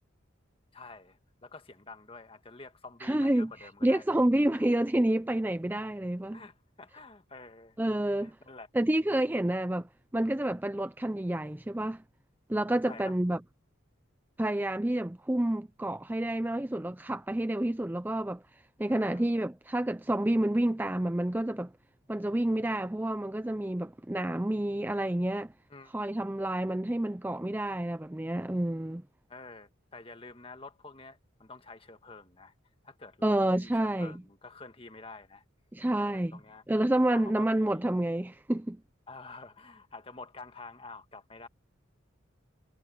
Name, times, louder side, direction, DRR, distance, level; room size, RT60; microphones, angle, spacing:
voice 1, 0.7-4.2 4.5-4.7 6.3-7.8 8.2-8.7 12.8-13.1 18.8-19.4 25.7-25.9 29.3-32.5 32.8-35.4 36.0-36.6 37.1-38.0 39.1-41.5, left 3 dB, 30° left, 1.7 m, -49 dB
voice 2, 3.0-6.4 7.8-8.4 8.7-12.0 12.5-13.4 14.4-18.4 18.8-21.7 22.1-25.5 25.9-29.0 33.2-34.2 35.7-36.4 36.7-38.8, right 1 dB, 10° right, 0.4 m, -29 dB
head